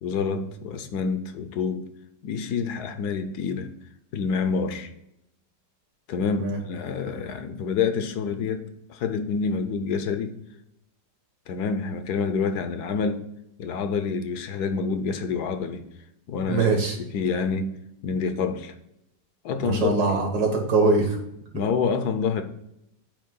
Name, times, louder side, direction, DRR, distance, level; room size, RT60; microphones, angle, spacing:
voice 1, 0.0-1.9 2.2-3.7 4.1-4.9 6.1-10.4 11.5-13.2 13.6-15.8 16.3-16.7 17.0-17.8 18.0-18.7 19.4-19.9 21.5-22.4, left 5 dB, 70° left, 1.1 m, -27 dB
voice 2, 16.5-16.9 19.6-21.2, right 3 dB, 60° right, 2.0 m, -22 dB
8.7 x 3.0 x 5.3 m
omnidirectional pair, 1.9 m